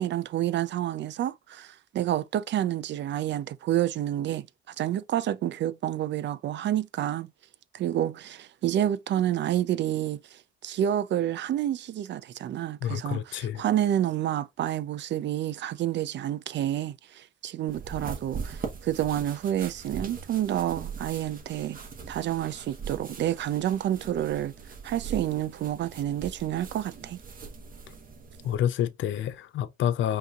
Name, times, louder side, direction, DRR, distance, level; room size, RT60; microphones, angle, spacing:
voice 1, 0.0-7.3 7.7-21.8 22.1-24.5 24.8-27.2, right 11 dB, 65° right, 0.5 m, -29 dB
voice 2, 12.8-13.6 28.4-30.2, left 10 dB, 75° left, 0.6 m, -28 dB
sound 1, 17.7-28.6, right 5 dB, 45° right, 1.3 m, -41 dB
5.5 x 3.0 x 2.4 m
cardioid pair, 90°, 20 cm